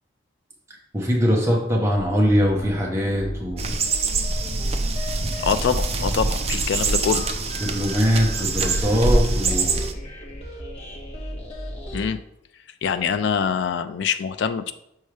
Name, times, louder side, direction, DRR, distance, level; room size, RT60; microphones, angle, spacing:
voice 1, 0.9-3.8 7.6-9.8, equal, 15° right, -2 dB, 0.9 m, -22 dB
sound 1, 2.8-12.1, equal, 35° left, 1.4 m, -35 dB
sound 2, 3.6-9.9, right 3 dB, 35° right, 0.5 m, -24 dB
voice 2, 5.4-7.3 11.9-12.2 12.8-14.7, left 6 dB, 80° left, 10 dB, 0.3 m, -24 dB
6.4 x 4.5 x 3.3 m, 0.78 s
head